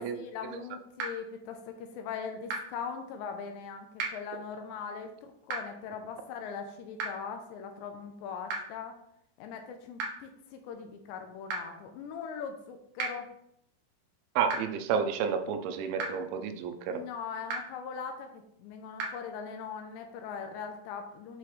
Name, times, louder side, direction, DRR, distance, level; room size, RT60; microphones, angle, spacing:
voice 1, 0.0-9.0 9.4-13.3 16.9-21.4, left 6 dB, 80° left, 5 dB, 2.9 m, -40 dB
sound 1, 1.0-1.1 2.5-2.6 4.0-4.1 5.5-5.6 7.0-7.1 8.5-8.6 10.0-10.1 11.5-11.6 13.0-13.1 14.5-14.6 16.0-16.1 17.5-17.6 19.0-19.1, right 4 dB, 65° right, 2.4 m, -32 dB
voice 2, 14.4-17.0, right 7 dB, 85° right, 7 dB, 3.0 m, -30 dB
8.4 x 5.8 x 3.3 m, 0.75 s
omnidirectional pair, 5.3 m